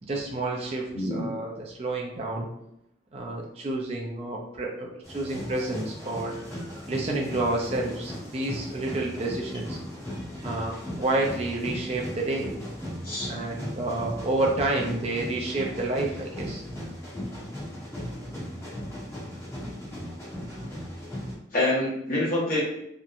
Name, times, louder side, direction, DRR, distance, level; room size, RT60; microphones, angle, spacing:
voice 1, 0.0-2.5 3.1-6.3 6.9-9.8 10.4-12.5 13.3-16.6, right 2 dB, 35° right, -1 dB, 0.4 m, -29 dB
voice 2, 0.9-1.3 13.0-13.3 21.5-22.6, left 1 dB, 50° left, -7 dB, 1.2 m, -26 dB
sound 1, 5.0-21.3, equal, 15° left, 0.8 m, -37 dB
2.8 x 2.1 x 2.4 m, 0.77 s
head